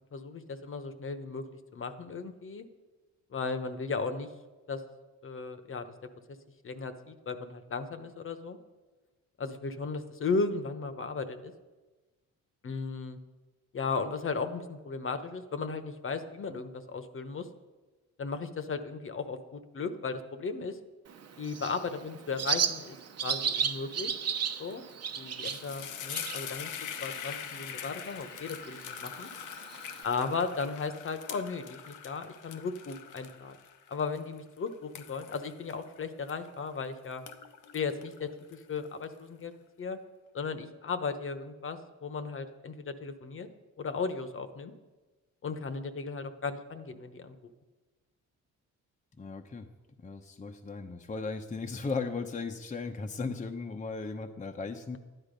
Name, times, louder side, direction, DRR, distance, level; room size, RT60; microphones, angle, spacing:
voice 1, 0.1-1.4 1.7-2.6 3.3-4.3 4.7-4.8 5.2-5.9 6.6-8.6 9.4-11.5 12.6-13.2 13.7-17.5 18.2-20.8 21.4-23.0 23.2-24.1 24.6-24.8 25.2-29.3 30.0-33.6 33.9-37.2 37.7-39.5 39.8-40.0 40.3-43.5 43.8-44.7 45.4-47.4, left 4 dB, 45° left, 10 dB, 1.1 m, -36 dB
Bird, 21.1-30.0, right 7 dB, 55° right, 1.0 m, -36 dB
sound 1, 24.7-24.9 25.2-36.8 37.1-39.0, left 8 dB, 80° left, 1.1 m, -43 dB
voice 2, 49.2-49.7 50.0-55.0, left 4 dB, 25° left, 5 dB, 0.9 m, -36 dB
12.5 x 10.0 x 5.3 m, 1.2 s
cardioid pair, 90°, 30 cm